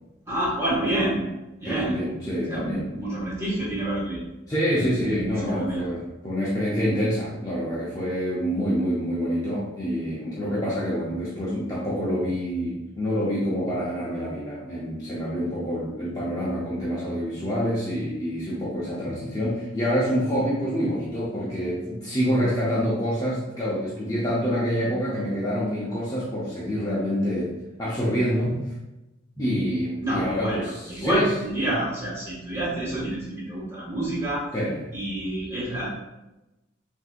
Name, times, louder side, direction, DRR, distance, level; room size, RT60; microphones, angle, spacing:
voice 1, 0.3-1.2 1.6-1.9 2.5-4.2 4.7-5.9 30.0-34.4 34.9-35.9, right 1 dB, 15° right, -7 dB, 1.5 m, -28 dB
voice 2, 1.6-3.0 4.5-27.5 27.8-28.6 29.4-31.3 31.7-31.8 34.5-34.8, equal, 20° left, -8 dB, 0.7 m, -27 dB
6.3 x 2.7 x 2.4 m, 0.98 s
head